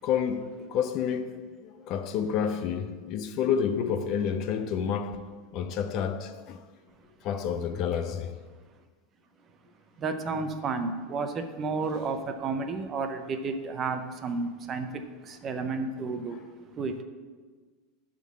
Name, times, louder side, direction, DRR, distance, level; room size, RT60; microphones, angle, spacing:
voice 1, 0.0-6.6 7.2-8.3, left 7 dB, 35° left, 0.4 m, -29 dB
voice 2, 10.0-17.0, right 4 dB, 20° right, 0.5 m, -32 dB
11.0 x 3.8 x 7.3 m
supercardioid pair, 180°, 0 cm